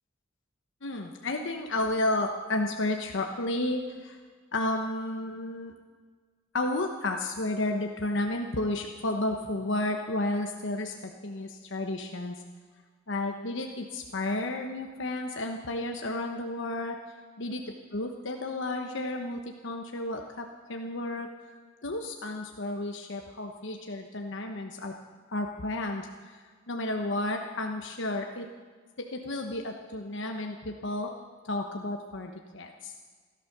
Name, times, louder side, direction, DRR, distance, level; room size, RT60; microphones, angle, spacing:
voice 1, 0.8-4.2 4.5-5.7 6.5-12.4 13.1-17.0 17.4-17.6 17.9-21.3 21.8-24.9 25.3-28.5 29.0-31.1 31.4-32.9, left 2 dB, 65° left, 3 dB, 1.1 m, -32 dB
16.5 x 12.0 x 6.7 m, 1.5 s
head